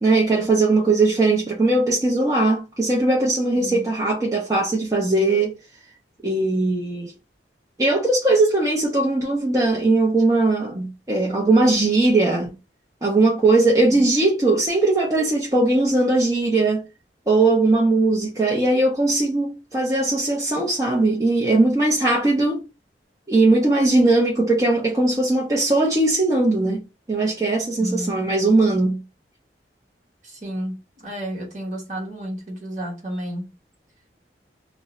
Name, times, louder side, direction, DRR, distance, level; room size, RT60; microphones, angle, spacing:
voice 1, 0.0-5.6 6.2-7.1 7.8-12.5 13.0-16.8 17.3-22.6 23.3-26.8 27.1-29.0, right 2 dB, 20° right, 0.6 m, -19 dB
voice 2, 3.5-3.9 13.7-14.1 27.8-28.3 30.2-33.5, equal, 45° right, 1.1 m, -32 dB
2.5 x 2.1 x 3.7 m
head